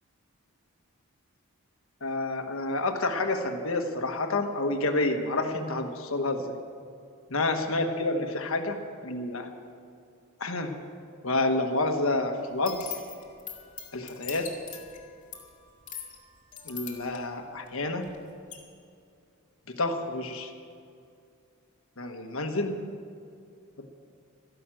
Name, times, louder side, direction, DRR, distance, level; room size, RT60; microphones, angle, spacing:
voice 1, 2.0-6.6 7.3-9.5 10.4-10.8 11.2-12.9 13.9-14.5 16.6-18.1 19.7-20.5 22.0-22.8 23.8-23.9, left 2 dB, 70° left, 5 dB, 1.3 m, -29 dB
sound 1, 12.5-18.2 18.5-18.6, left 7 dB, 35° left, 2.2 m, -42 dB
13.0 x 12.0 x 7.7 m, 2.4 s
head